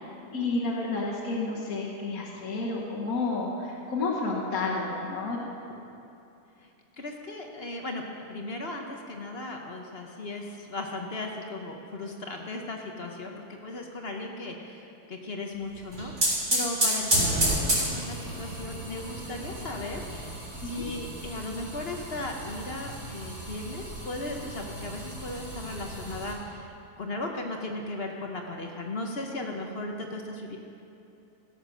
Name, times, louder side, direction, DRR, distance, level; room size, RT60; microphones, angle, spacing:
voice 1, 0.3-5.4 20.6-20.9, left 3 dB, 60° left, -6 dB, 1.8 m, -30 dB
voice 2, 7.0-20.3 20.6-30.6, left 2 dB, 45° left, 2 dB, 1.1 m, -37 dB
sound 1, 15.7-26.3, right 1 dB, 70° right, 4.6 m, -31 dB
17.0 x 7.4 x 6.2 m, 2.8 s
omnidirectional pair, 1.7 m